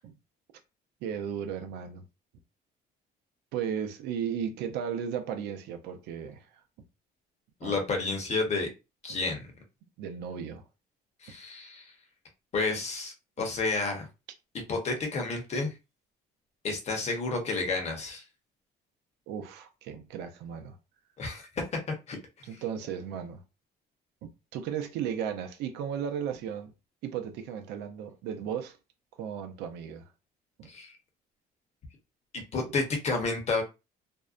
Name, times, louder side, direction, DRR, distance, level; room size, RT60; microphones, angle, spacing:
voice 1, 1.0-2.0 3.5-6.5 7.6-7.8 9.1-9.2 10.0-10.6 13.4-13.5 19.3-20.8 22.5-23.4 24.2-26.7 27.0-28.8 29.2-30.0 30.6-30.7, right 8 dB, 85° right, 0.5 m, -35 dB
voice 2, 7.6-8.7 9.0-9.5 11.2-11.9 12.5-14.1 14.7-15.7 16.6-18.2 21.2-21.8 22.1-22.2 30.7-30.9 32.5-33.6, left 3 dB, 40° left, 0.9 m, -30 dB
2.6 x 2.1 x 2.4 m
cardioid pair, 110°, 17 cm